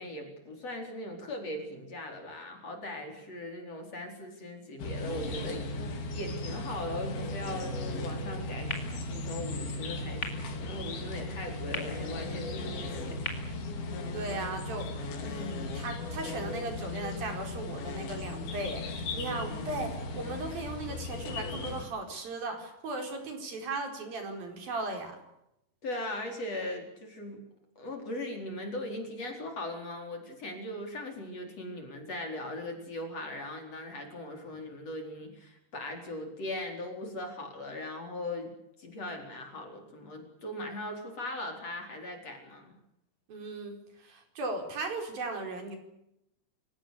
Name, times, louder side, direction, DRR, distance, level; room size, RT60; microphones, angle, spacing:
voice 1, 0.0-8.8 9.1-13.2 25.8-27.4 27.8-38.5 38.8-42.8, left 1 dB, 40° left, 3 dB, 5.1 m, -39 dB
sound 1, 4.8-21.9, left 2 dB, 70° left, 5.0 m, -37 dB
sound 2, 8.7-14.6, left 2 dB, 15° left, 4.6 m, -44 dB
voice 2, 13.8-14.9 15.2-25.2 43.3-45.8, right 2 dB, 65° right, 4 dB, 6.4 m, -37 dB
28.5 x 17.0 x 8.4 m, 0.83 s
omnidirectional pair, 4.6 m